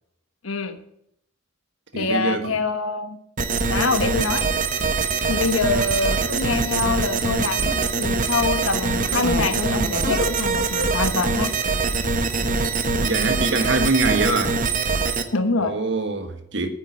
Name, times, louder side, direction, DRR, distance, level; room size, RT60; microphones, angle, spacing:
voice 1, 0.4-0.8 1.9-3.2 3.7-4.4 5.2-11.5 15.3-15.7, left 3 dB, 85° left, 1.2 m, -25 dB
voice 2, 1.9-2.5 13.0-14.6 15.6-16.7, right 3 dB, 60° right, 1.5 m, -23 dB
sound 1, 3.4-15.2, right 4 dB, 40° right, 1.0 m, -23 dB
9.4 x 9.0 x 7.3 m
head